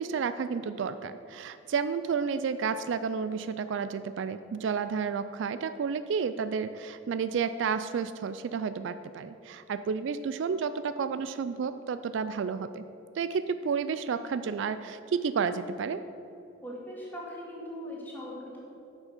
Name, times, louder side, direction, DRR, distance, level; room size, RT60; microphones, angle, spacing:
voice 1, 0.0-12.8 13.1-16.0, right 6 dB, 60° right, 12 dB, 0.3 m, -31 dB
voice 2, 16.6-18.6, equal, 10° left, -5 dB, 2.2 m, -40 dB
9.4 x 6.1 x 6.6 m, 2.9 s
head